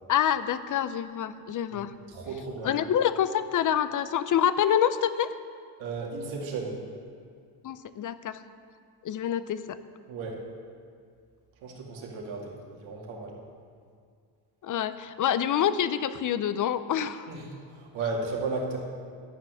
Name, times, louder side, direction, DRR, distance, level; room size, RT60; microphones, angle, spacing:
voice 1, 0.1-1.9 2.6-5.3 7.6-8.4 9.0-9.8 14.6-17.3, left 9 dB, 40° left, 13 dB, 0.6 m, -27 dB
voice 2, 2.1-2.7 5.8-6.8 10.1-10.4 11.6-13.4 17.3-18.8, right 3 dB, 75° right, -2 dB, 2.4 m, -34 dB
12.0 x 6.0 x 7.9 m, 2.1 s
supercardioid pair, 70°, 47 cm